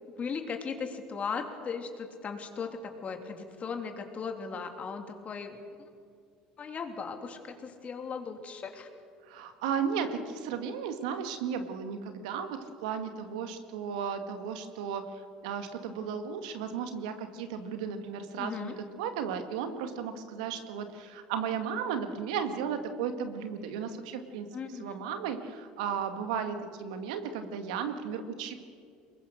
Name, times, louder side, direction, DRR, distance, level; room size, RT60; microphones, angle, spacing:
voice 1, 0.2-5.6 6.6-8.9 18.4-18.8 24.5-24.9, left 5 dB, 40° left, 5 dB, 3.1 m, -37 dB
voice 2, 9.3-15.1 15.4-24.5 24.8-28.5, right 7 dB, 80° right, 8 dB, 1.9 m, -35 dB
23.5 x 21.0 x 6.6 m, 2.3 s
hypercardioid pair, 80°, 4 cm